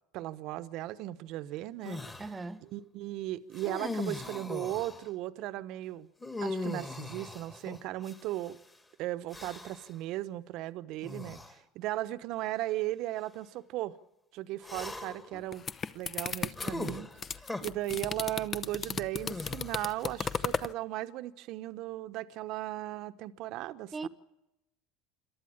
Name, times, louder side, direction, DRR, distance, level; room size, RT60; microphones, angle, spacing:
voice 1, 0.1-2.0 2.7-6.1 6.4-8.6 9.0-13.9 14.3-15.6 15.9-17.1 17.6-24.1, right 15 dB, 60° right, 0.9 m, -36 dB
sound 1, 1.8-2.3 3.5-5.1 6.2-8.5 9.3-9.9 11.0-11.5 12.4-12.5 14.6-15.3 16.6-17.6 19.2-20.0, left 2 dB, 15° left, 2.2 m, -39 dB
voice 2, 2.2-2.6 23.9-24.1, right 3 dB, 20° right, 1.1 m, -38 dB
sound 2, 15.3-20.7, left 6 dB, 35° left, 0.7 m, -35 dB
27.5 x 12.0 x 8.5 m
hypercardioid pair, 80°, 0 cm